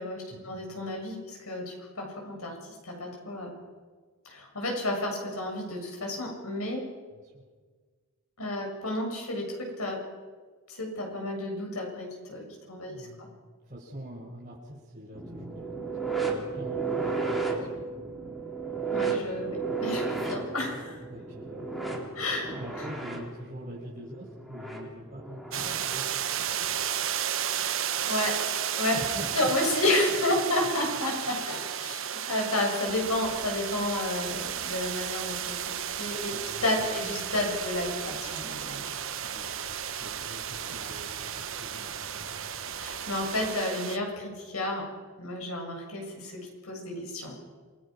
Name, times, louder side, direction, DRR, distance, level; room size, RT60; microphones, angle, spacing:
voice 1, 0.0-2.6 2.8-3.5 4.2-6.9 8.4-10.0 10.7-13.3 18.9-21.0 22.2-22.5 27.4-28.4 28.8-28.9 29.4-36.3 36.6-38.9 42.8-44.8 45.2-47.4, left 1 dB, 75° left, 1 dB, 7.3 m, -31 dB
voice 2, 7.1-7.4 12.8-13.3 13.6-15.8 16.2-17.8 21.1-22.2 22.5-26.4 28.9-29.5 31.7-31.8 36.3-37.3 39.2-42.4, equal, 35° right, -6 dB, 6.2 m, -44 dB
sound 1, 15.1-26.1 27.4-27.6 28.5-28.6, right 4 dB, ahead, 3.4 m, -33 dB
sound 2, 25.5-44.0, right 9 dB, 60° right, 1.1 m, -33 dB
sound 3, 32.9-43.5, right 6 dB, 80° right, 2.7 m, -45 dB
28.0 x 21.5 x 6.0 m, 1.5 s
head